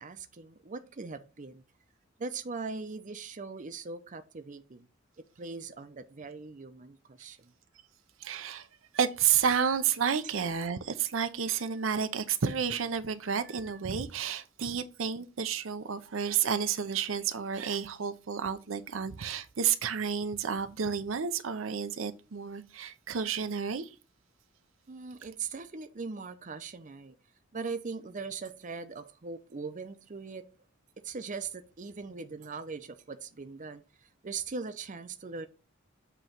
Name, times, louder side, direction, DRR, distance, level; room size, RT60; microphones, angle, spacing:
voice 1, 0.0-1.6 2.2-4.9 5.4-7.5 24.9-27.1 27.5-30.4 31.0-35.5, right 4 dB, 40° right, 0.6 m, -40 dB
voice 2, 8.2-8.7 8.9-23.9, right 7 dB, 90° right, 0.6 m, -31 dB
7.8 x 3.1 x 5.9 m
head